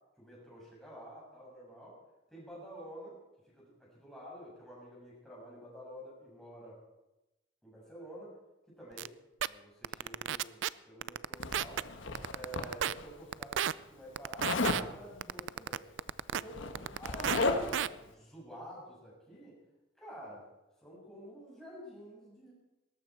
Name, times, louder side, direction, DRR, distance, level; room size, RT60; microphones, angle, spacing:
voice 1, 0.2-2.0 2.3-3.2 3.5-6.8 7.6-8.3 8.7-9.1 9.4-11.9 12.3-15.8 16.3-19.6 20.0-20.5 20.8-22.5, equal, ahead, -6 dB, 6.6 m, -49 dB
sound 1, 9.0-9.1 9.4-9.5 9.8-10.7 11.0-11.8 12.1-12.9 13.3-13.7 14.2-14.8 15.2-16.4 16.7-17.4 17.7-17.9, right 9 dB, 75° right, 0.4 m, -32 dB
Zipper (clothing), 11.4-13.1 14.4-14.9 16.0-16.1 16.4-17.9, left 3 dB, 75° left, 1.4 m, -34 dB
18.5 x 13.5 x 4.7 m, 1.0 s
head